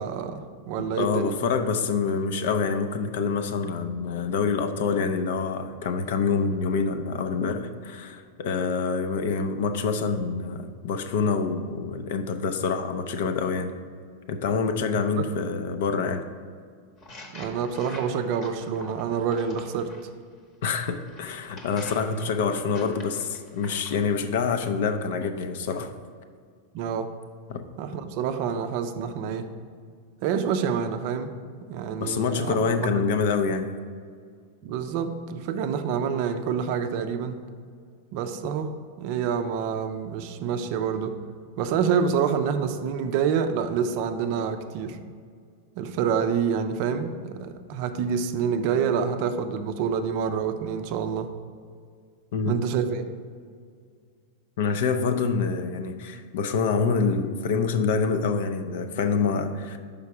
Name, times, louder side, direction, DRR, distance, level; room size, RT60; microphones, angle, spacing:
voice 1, 0.0-1.3 15.2-15.3 17.3-19.9 26.7-27.1 27.8-29.5 30.2-31.3 31.7-33.0 34.6-37.4 38.1-41.1 41.6-45.0 45.8-51.3 52.4-53.1, right 7 dB, 45° right, 8 dB, 0.5 m, -27 dB
voice 2, 1.0-13.7 14.3-16.2 20.6-25.9 27.5-27.6 32.0-33.7 52.3-52.5 54.6-59.8, left 5 dB, 60° left, 8 dB, 0.5 m, -26 dB
sound 1, 17.0-20.0 20.7-24.0, left 2 dB, 25° left, 0.9 m, -45 dB
5.6 x 5.1 x 4.7 m, 2.1 s
supercardioid pair, 165°, 0 cm